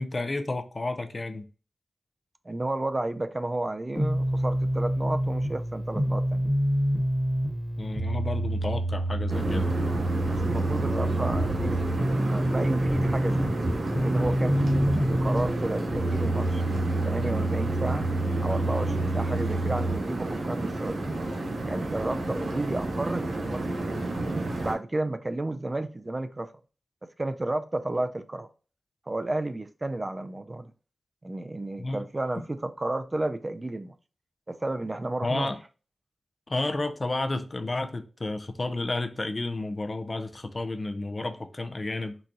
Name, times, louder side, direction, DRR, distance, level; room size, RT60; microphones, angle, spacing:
voice 1, 0.0-1.5 7.8-9.7 31.8-32.0 35.2-35.6 36.5-42.2, left 2 dB, 45° left, 0.4 m, -31 dB
voice 2, 2.5-6.5 10.3-11.8 12.1-13.7 14.0-16.6 17.0-18.1 18.4-21.1 21.7-23.9 24.6-26.5 27.2-28.5 29.1-30.7 31.2-33.9 34.5-35.5, right 2 dB, 35° right, 0.4 m, -32 dB
sound 1, 3.9-20.0, right 1 dB, 5° left, 1.1 m, -27 dB
sound 2, 9.3-24.7, right 2 dB, 85° right, 0.8 m, -30 dB
3.9 x 2.3 x 2.5 m
cardioid pair, 50°, 0 cm